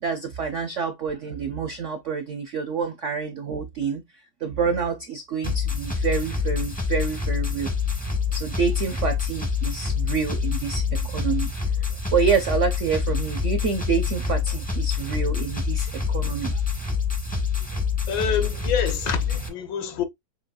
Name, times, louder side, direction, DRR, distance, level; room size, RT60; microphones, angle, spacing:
voice 1, 0.0-4.0 4.4-7.7 8.3-11.5 12.1-16.6, right 6 dB, 75° right, 0.7 m, -27 dB
sound 1, 5.4-19.5, left 6 dB, 10° left, 0.4 m, -26 dB
voice 2, 18.1-20.1, left 7 dB, 70° left, 1.4 m, -27 dB
6.9 x 2.9 x 2.3 m
omnidirectional pair, 2.2 m